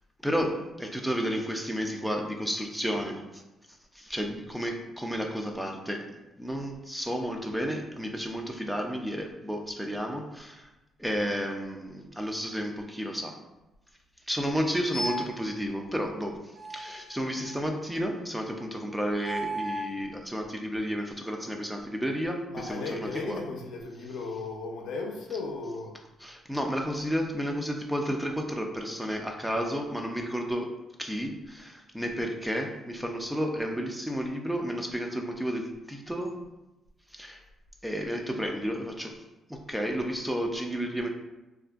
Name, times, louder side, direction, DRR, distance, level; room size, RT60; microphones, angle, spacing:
voice 1, 0.2-3.2 3.9-6.0 6.4-10.7 11.0-13.4 14.3-16.4 16.7-23.4 26.2-30.7 31.0-36.3 37.1-37.4 37.8-39.1 39.5-41.1, equal, 5° right, 2 dB, 0.3 m, -32 dB
sound 1, 14.9-15.4 16.5-17.8 19.1-20.0, right 1 dB, 30° right, 0.7 m, -35 dB
voice 2, 22.5-25.9, left 3 dB, 85° left, 1 dB, 0.5 m, -36 dB
2.8 x 2.5 x 2.3 m, 0.99 s
cardioid pair, 115°, 0 cm